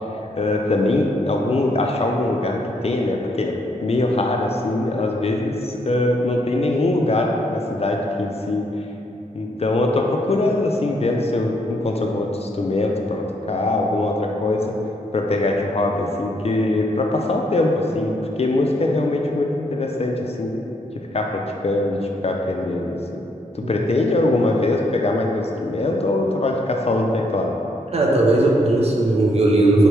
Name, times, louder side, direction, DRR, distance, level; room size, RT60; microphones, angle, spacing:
voice 1, 0.3-3.5 3.8-8.7 9.3-14.6 15.1-20.5 21.1-23.0 23.5-27.6, left 2 dB, 50° left, 1 dB, 0.4 m, -22 dB
voice 2, 27.9-29.9, right 2 dB, 50° right, -3 dB, 0.6 m, -17 dB
3.5 x 3.3 x 3.0 m, 2.8 s
wide cardioid pair, 55°, 13 cm